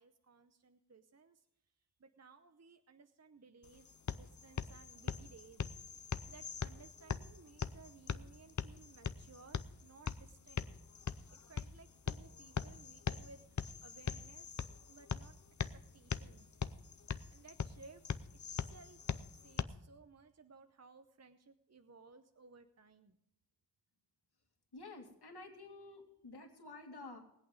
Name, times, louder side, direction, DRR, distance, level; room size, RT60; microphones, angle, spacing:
voice 1, 0.0-1.5 2.0-5.7 6.3-10.7 11.3-15.4 15.7-16.5 17.3-18.0 18.5-19.0 19.3-23.2, right 4 dB, 40° right, 8 dB, 0.8 m, -60 dB
sound 1, 3.6-19.6, left 6 dB, 45° left, 0.7 m, -42 dB
voice 2, 24.7-27.2, left 3 dB, 70° left, 2 dB, 2.5 m, -51 dB
20.0 x 8.5 x 5.2 m, 0.81 s
wide cardioid pair, 80°, 41 cm